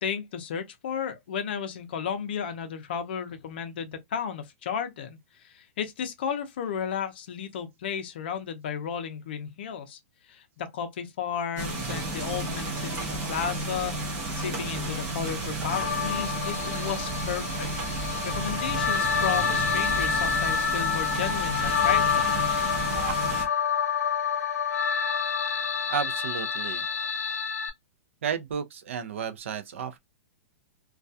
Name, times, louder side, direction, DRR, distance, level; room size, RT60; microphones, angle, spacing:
voice 1, 0.0-10.0 10.3-17.7 18.0-22.7, left 7 dB, 45° left, 0.5 m, -33 dB
sound 1, 11.6-23.4, right 2 dB, 15° right, 0.6 m, -32 dB
sound 2, 15.7-27.7, left 7 dB, 90° left, 0.6 m, -28 dB
Wind instrument woodwind instrument, 19.9-23.8, right 3 dB, 35° right, 1.1 m, -44 dB
voice 2, 25.9-26.9 28.2-30.0, right 7 dB, 60° right, 0.4 m, -32 dB
2.2 x 2.2 x 2.6 m
hypercardioid pair, 180°, 8 cm